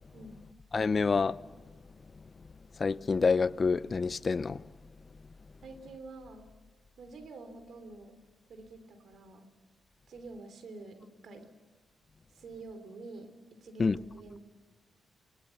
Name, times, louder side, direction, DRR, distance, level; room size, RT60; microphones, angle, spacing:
voice 1, 0.7-1.4 2.8-4.6 13.8-14.0, left 4 dB, 40° left, 0.6 m, -27 dB
voice 2, 5.6-6.5 7.0-8.2 8.5-9.5 10.1-11.5 12.3-14.4, right 3 dB, 65° right, 3.1 m, -48 dB
25.0 x 20.5 x 7.2 m
cardioid pair, 70°, 0 cm